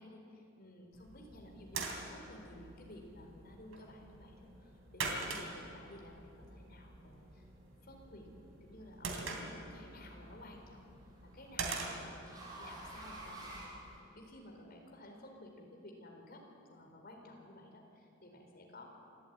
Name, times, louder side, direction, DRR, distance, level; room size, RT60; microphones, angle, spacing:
voice 1, 0.0-7.4 7.8-8.3 8.6-10.9 11.2-13.8 14.1-16.4 16.7-18.9, left 1 dB, 50° left, 1 dB, 4.1 m, -54 dB
sound 1, 0.9-14.0, right 3 dB, 90° right, 3.1 m, -45 dB
sound 2, 8.6-9.1 10.5-14.5, right 1 dB, 20° right, 6.0 m, -51 dB
26.5 x 13.0 x 9.4 m, 2.7 s
head